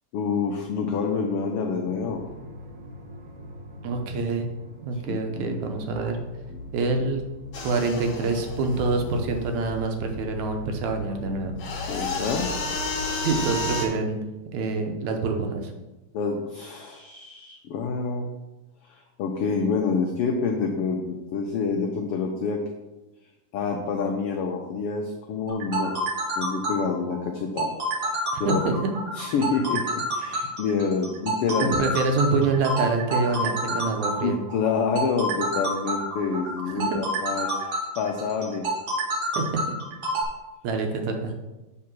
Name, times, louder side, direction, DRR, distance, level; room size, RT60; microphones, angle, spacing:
voice 1, 0.1-2.2 5.1-5.8 6.5-6.7 11.9-12.5 16.1-18.3 18.9-22.6 23.5-25.9 26.4-27.7 28.0-28.7 29.1-31.7 33.6-33.8 34.2-38.7, left 5 dB, 85° left, 2 dB, 1.2 m, -27 dB
sound 1, 1.9-13.7, left 1 dB, 60° right, 1.9 m, -40 dB
voice 2, 3.8-4.5 4.8-6.2 6.7-7.2 7.6-11.5 13.2-14.2 14.5-15.7 28.3-28.8 31.8-34.4 36.9-37.0 39.3-39.8 40.6-41.3, right 3 dB, 75° right, 4 dB, 2.2 m, -26 dB
sound 2, 7.5-9.6 11.6-13.9, left 3 dB, 55° left, 1.6 m, -32 dB
sound 3, 25.5-40.2, right 1 dB, 45° right, 1.5 m, -28 dB
7.4 x 3.7 x 6.0 m, 1.0 s
omnidirectional pair, 3.4 m